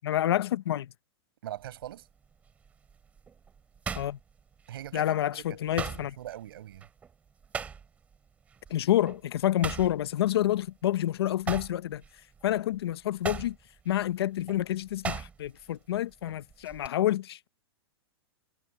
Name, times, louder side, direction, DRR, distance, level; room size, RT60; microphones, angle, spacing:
voice 1, 0.0-0.9 3.9-4.2 4.9-6.1 8.7-12.0 12.4-13.6 13.8-17.5, left 12 dB, 70° left, 0.9 m, -28 dB
voice 2, 1.4-2.1 4.7-6.9, right 12 dB, 60° right, 5.8 m, -42 dB
sound 1, 1.6-1.9 2.5-5.0 5.3-8.2 8.5-8.7 9.1-11.0 11.3-15.7 15.9-16.9, right 6 dB, 10° right, 2.7 m, -39 dB
supercardioid pair, 180°, 14 cm